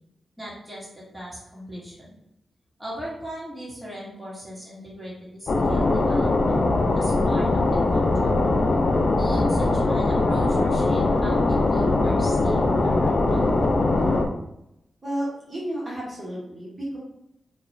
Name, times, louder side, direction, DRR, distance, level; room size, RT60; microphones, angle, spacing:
voice 1, 0.4-2.2 2.8-6.7 6.9-7.6 7.9-8.3 9.2-13.4, equal, 10° right, -7 dB, 1.2 m, -38 dB
sound 1, 5.5-14.3, left 2 dB, 55° left, 0.4 m, -21 dB
voice 2, 15.0-17.0, right 1 dB, 40° right, -7 dB, 1.0 m, -32 dB
2.3 x 2.3 x 3.0 m, 0.83 s
cardioid pair, 65°, 0 cm